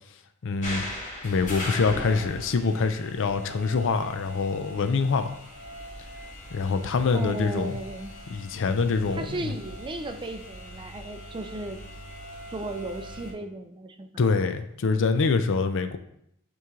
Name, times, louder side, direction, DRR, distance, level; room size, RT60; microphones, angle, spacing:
voice 1, 0.4-0.8 1.2-5.3 6.5-7.7 8.3-9.6 14.2-16.0, left 4 dB, 60° left, 9 dB, 0.5 m, -25 dB
sound 1, 0.6-13.3, left 1 dB, 35° left, 1.7 m, -40 dB
voice 2, 7.1-8.1 9.1-11.8 12.5-14.1, right 2 dB, 20° right, 7 dB, 0.4 m, -35 dB
8.3 x 3.1 x 3.6 m, 0.74 s
head